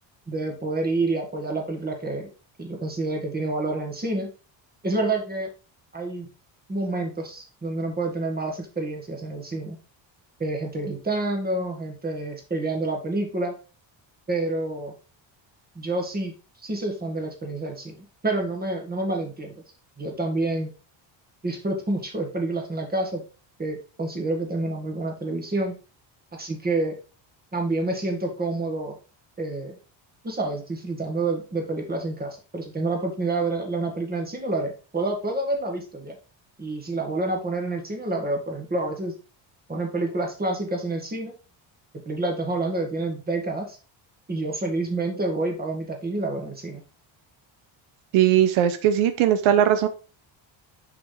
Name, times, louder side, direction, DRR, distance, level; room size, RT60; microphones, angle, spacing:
voice 1, 0.3-2.3 2.6-4.3 4.8-5.5 5.9-6.3 6.7-9.8 10.4-13.5 14.3-14.9 15.8-19.5 20.0-20.7 21.4-23.2 23.6-25.8 26.4-27.0 27.5-29.0 29.4-29.8 30.2-36.2 36.6-39.2 39.7-41.3 42.1-43.8 44.3-46.8, right 2 dB, 20° right, 2 dB, 1.9 m, -28 dB
voice 2, 48.1-49.9, right 10 dB, 85° right, 10 dB, 0.8 m, -19 dB
6.0 x 6.0 x 3.3 m, 0.33 s
cardioid pair, 130°, 47 cm